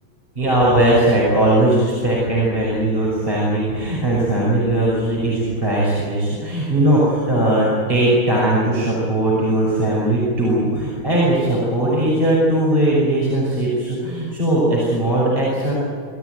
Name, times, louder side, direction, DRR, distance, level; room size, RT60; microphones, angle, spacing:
voice 1, 0.4-15.7, right 1 dB, 25° right, -5 dB, 6.3 m, -19 dB
27.0 x 15.5 x 9.5 m, 2.3 s
omnidirectional pair, 2.3 m